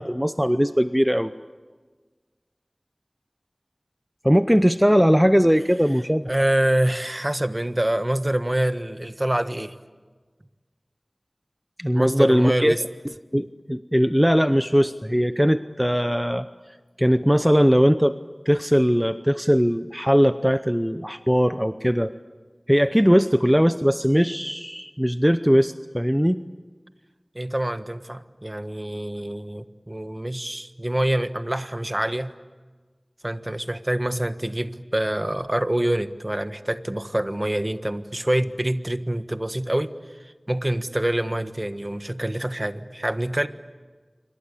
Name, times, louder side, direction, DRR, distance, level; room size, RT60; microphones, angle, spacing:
voice 1, 0.0-1.3 4.2-6.3 11.8-12.7 13.3-16.5 17.0-18.1 18.5-22.1 22.7-26.4, equal, 5° right, 11 dB, 0.8 m, -20 dB
voice 2, 6.3-9.7 11.9-12.8 27.3-32.3 33.2-39.9 40.2-43.5, right 1 dB, 35° right, 10 dB, 1.5 m, -26 dB
27.5 x 24.5 x 8.5 m, 1.4 s
wide cardioid pair, 40°, 0 cm